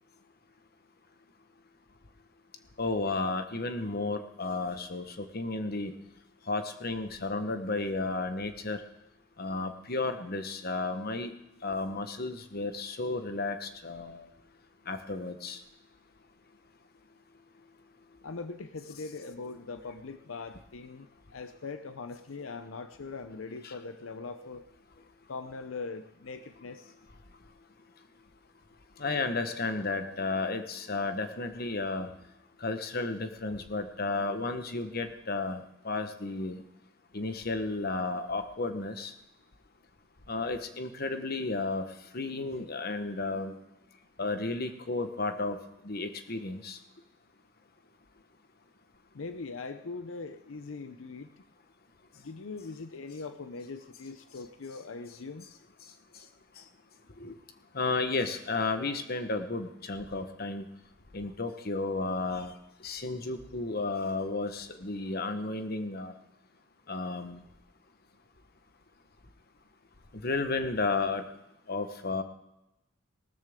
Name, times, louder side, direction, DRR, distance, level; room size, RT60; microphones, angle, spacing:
voice 1, 2.8-5.9 6.5-8.8 9.4-11.3 11.6-14.3 14.9-15.6 23.6-23.7 29.0-32.1 32.6-36.6 37.1-39.1 40.3-41.8 42.1-43.5 44.2-45.6 45.8-46.8 57.2-57.4 57.7-60.6 61.1-62.5 62.8-66.1 66.9-67.4 70.2-71.2 71.7-72.2, left 3 dB, 50° left, 8 dB, 1.2 m, -33 dB
voice 2, 18.2-24.7 25.3-26.9 49.1-51.4 52.1-55.5, left 4 dB, 85° left, 9 dB, 0.7 m, -41 dB
18.5 x 13.0 x 3.7 m, 0.89 s
head